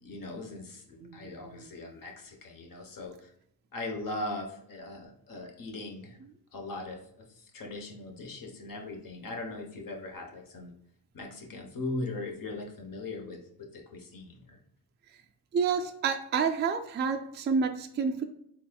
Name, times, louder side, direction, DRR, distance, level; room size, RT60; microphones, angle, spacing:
voice 1, 0.0-3.3 3.7-6.2 6.5-7.0 7.4-10.7 11.1-14.6, left 2 dB, 55° left, 2 dB, 1.0 m, -39 dB
voice 2, 1.0-1.7 6.2-6.3 15.5-18.2, right 5 dB, 30° right, 5 dB, 0.3 m, -29 dB
4.2 x 3.5 x 2.2 m, 0.72 s
cardioid pair, 120°, 40 cm